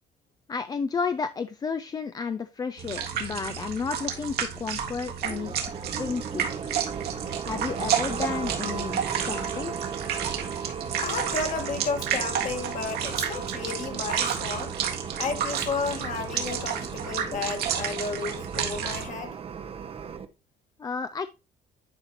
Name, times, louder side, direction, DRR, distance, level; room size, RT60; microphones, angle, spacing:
voice 1, 0.5-6.8 7.4-9.0 9.2-9.7 20.8-21.3, left 5 dB, 25° left, 0.3 m, -32 dB
sound 1, 2.8-19.1, right 8 dB, 70° right, 1.7 m, -31 dB
sound 2, 5.3-20.3, right 6 dB, 35° right, 0.7 m, -36 dB
voice 2, 10.9-14.7 15.2-19.4, left 4 dB, 50° left, 1.6 m, -32 dB
10.5 x 4.3 x 2.9 m
cardioid pair, 110°, 17 cm